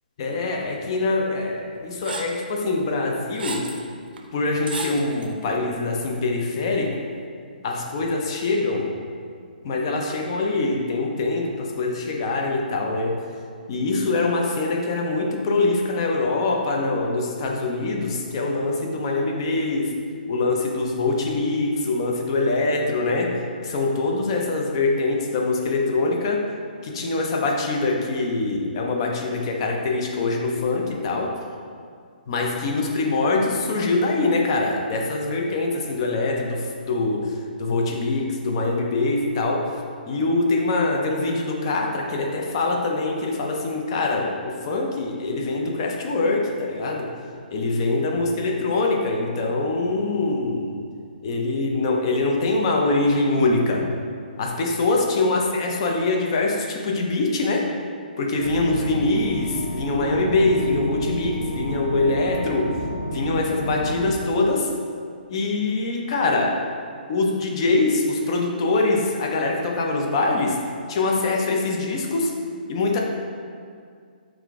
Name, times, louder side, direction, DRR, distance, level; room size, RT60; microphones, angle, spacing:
voice 1, 0.2-3.7 4.3-7.0 7.6-9.0 9.6-13.2 13.7-19.9 20.3-26.5 26.8-31.4 32.3-47.1 47.5-50.7 51.2-53.9 54.4-57.7 58.2-62.8 63.1-64.7 65.3-66.7 67.1-70.6 70.9-72.4 72.7-73.0, left 3 dB, 30° left, 1 dB, 0.5 m, -24 dB
sound 1, 2.0-2.4 3.1-3.8 4.2-4.3 4.7-5.3, right 4 dB, 75° right, 0.5 m, -33 dB
sound 2, 58.4-64.2, equal, 65° left, 0.9 m, -30 dB
4.8 x 2.5 x 3.5 m, 2.2 s
hypercardioid pair, 165°, 5 cm